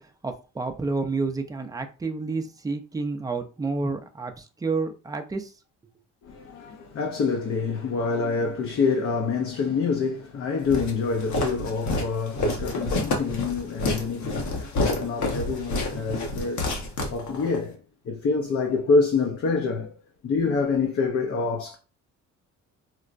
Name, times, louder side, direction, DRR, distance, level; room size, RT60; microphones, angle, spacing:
voice 1, 0.0-5.5, right 3 dB, 10° right, 0.4 m, -30 dB
voice 2, 6.2-21.8, left 4 dB, 50° left, 0.6 m, -26 dB
Walk footsteps, 10.7-17.6, left 2 dB, 70° left, 1.0 m, -28 dB
4.5 x 2.1 x 2.5 m
cardioid pair, 110°, 30 cm